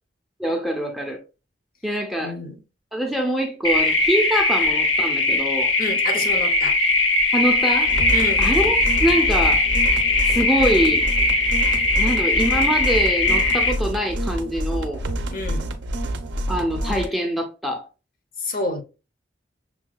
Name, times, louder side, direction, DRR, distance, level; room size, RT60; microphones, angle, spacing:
voice 1, 0.4-1.2 1.8-2.3 2.9-5.7 7.3-7.9 8.4-9.6 10.2-11.1 12.0-15.0 16.5-17.9, equal, ahead, 0.4 m, -24 dB
voice 2, 2.2-2.6 5.8-6.8 8.1-8.4 15.2-15.7 18.4-18.8, left 2 dB, 45° left, 0.6 m, -28 dB
sound 1, 3.6-13.7, left 2 dB, 80° left, 0.7 m, -20 dB
sound 2, 7.9-17.1, right 1 dB, 65° right, 0.5 m, -27 dB
6.1 x 2.2 x 2.2 m
head